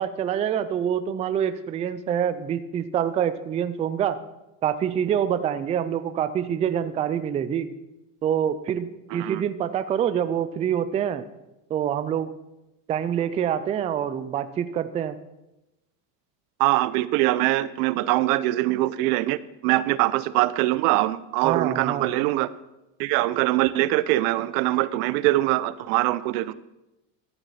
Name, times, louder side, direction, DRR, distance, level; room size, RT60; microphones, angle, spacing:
voice 1, 0.0-4.2 4.6-7.7 8.2-11.2 11.7-12.3 12.9-15.2 21.4-22.1, right 9 dB, 15° right, 12 dB, 0.3 m, -26 dB
voice 2, 9.1-9.4 16.6-22.5 23.0-26.5, right 17 dB, 65° right, 17 dB, 0.7 m, -23 dB
14.0 x 6.9 x 5.7 m, 0.95 s
supercardioid pair, 115°, 48 cm